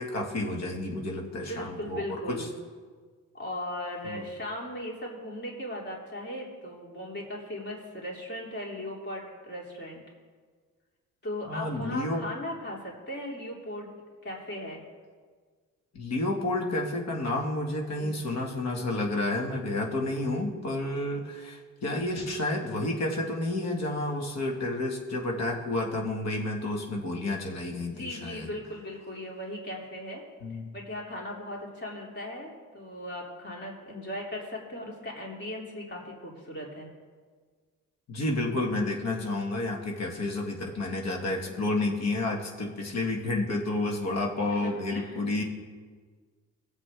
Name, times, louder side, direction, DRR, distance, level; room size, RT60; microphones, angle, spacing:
voice 1, 0.0-2.5 4.0-4.2 11.5-12.2 15.9-28.5 30.4-30.7 38.1-45.4, left 2 dB, 60° left, 1 dB, 2.0 m, -30 dB
voice 2, 1.1-2.5 3.3-10.0 11.2-13.9 14.2-14.8 18.0-18.3 27.8-30.2 30.7-36.9 41.3-41.4 44.5-45.4, left 1 dB, 35° left, -2 dB, 3.3 m, -38 dB
18.0 x 7.8 x 3.7 m, 1.5 s
cardioid pair, 90°, 30 cm